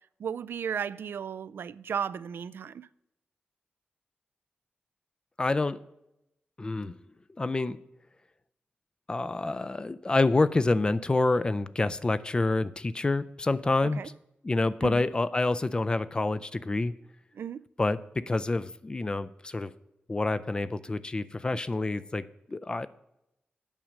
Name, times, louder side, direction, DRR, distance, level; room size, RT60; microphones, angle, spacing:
voice 1, 0.2-2.9 14.0-14.1 14.8-15.1 17.3-17.6, right 7 dB, 85° right, 0.3 m, -34 dB
voice 2, 5.4-5.8 6.6-6.9 7.4-7.8 9.1-14.0 14.4-16.9 17.8-19.7 20.1-22.9, left 2 dB, 25° left, 0.4 m, -27 dB
8.8 x 6.2 x 6.4 m
wide cardioid pair, 135°, 4 cm